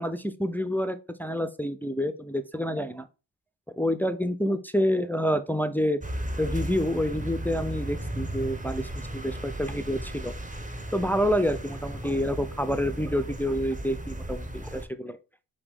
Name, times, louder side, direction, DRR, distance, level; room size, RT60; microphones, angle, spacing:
voice 1, 0.0-3.1 3.8-6.0 6.4-10.3 10.9-15.2, equal, 5° left, 10 dB, 0.3 m, -28 dB
sound 1, 6.0-14.9, right 1 dB, 15° right, 0.7 m, -35 dB
5.1 x 2.7 x 3.4 m, 0.31 s
cardioid pair, 50°, 46 cm